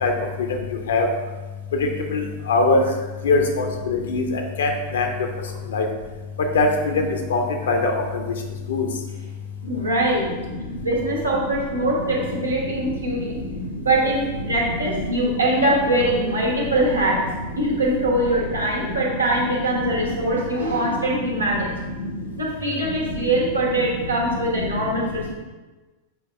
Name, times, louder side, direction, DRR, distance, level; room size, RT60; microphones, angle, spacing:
voice 1, 2.1-2.8 3.2-5.1 5.7-5.8 6.5-6.7 7.0-7.1 7.3-7.4 7.7-7.9 8.7-8.9, left 3 dB, 65° left, 3 dB, 0.9 m, -20 dB
voice 2, 9.6-10.3 10.8-13.4 13.8-17.2 17.5-21.7 22.4-25.3, right 1 dB, 80° right, -3 dB, 1.4 m, -22 dB
7.1 x 4.8 x 3.4 m, 1.2 s
figure-of-eight pair, 90°, 0 cm